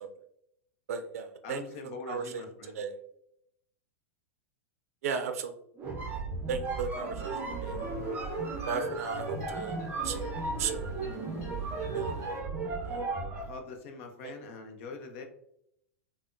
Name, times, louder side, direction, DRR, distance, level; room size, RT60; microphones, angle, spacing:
voice 1, 0.9-2.4 2.7-2.9 5.0-5.6 6.5-7.3 7.6-7.8 8.7-9.8 10.0-10.3 10.6-10.9 11.9-12.1 12.8-13.0 14.2-14.3, right 6 dB, 70° right, 8 dB, 0.4 m, -35 dB
voice 2, 1.4-2.8 13.4-15.2, left 4 dB, 55° left, 5 dB, 0.6 m, -43 dB
sound 1, 5.8-13.6, right 3 dB, 25° right, 0.5 m, -35 dB
sound 2, 7.2-12.4, right 1 dB, 40° left, 1.2 m, -46 dB
3.4 x 2.0 x 2.5 m, 0.75 s
hypercardioid pair, 105°, 8 cm